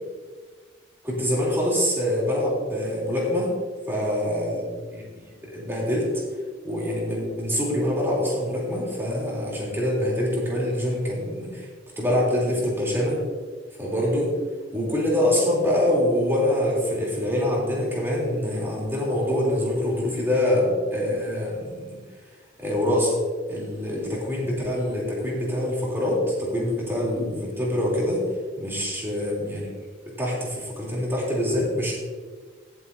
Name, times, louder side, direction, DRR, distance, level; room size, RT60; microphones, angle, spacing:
voice 1, 1.0-3.5 3.9-5.0 5.4-6.1 6.6-11.7 12.0-13.2 13.8-14.3 14.7-22.0 22.6-23.2 23.5-28.2 28.6-29.7 30.2-31.9, left 1 dB, 15° right, -5 dB, 3.6 m, -25 dB
18.5 x 7.9 x 2.8 m, 1.5 s
head